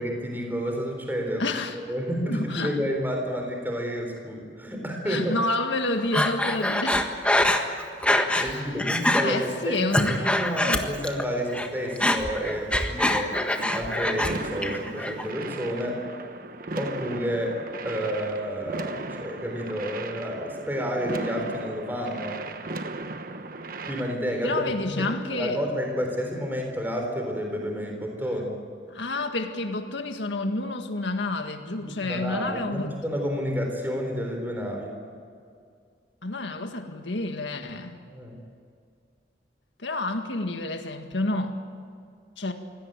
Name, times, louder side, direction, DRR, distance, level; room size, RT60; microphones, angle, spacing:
voice 1, 0.0-1.4 1.8-5.4 8.4-13.4 13.7-16.0 16.8-22.4 23.9-28.6 31.8-34.9 38.1-38.3, equal, 10° right, 2 dB, 3.9 m, -30 dB
voice 2, 1.4-1.8 2.2-2.8 5.1-7.0 8.3-8.7 9.2-10.3 10.6-10.9 24.4-25.6 28.9-32.9 36.2-38.0 39.8-41.5 42.4-42.5, left 2 dB, 85° left, 5 dB, 1.8 m, -29 dB
Breathing, 6.1-8.5 8.8-9.2 9.7-11.2 11.5-14.3 14.6-15.2, left 1 dB, 5° left, 1.5 m, -24 dB
sound 1, 13.6-24.1, right 2 dB, 50° right, 1.3 m, -37 dB
25.0 x 17.0 x 9.0 m, 2.2 s
head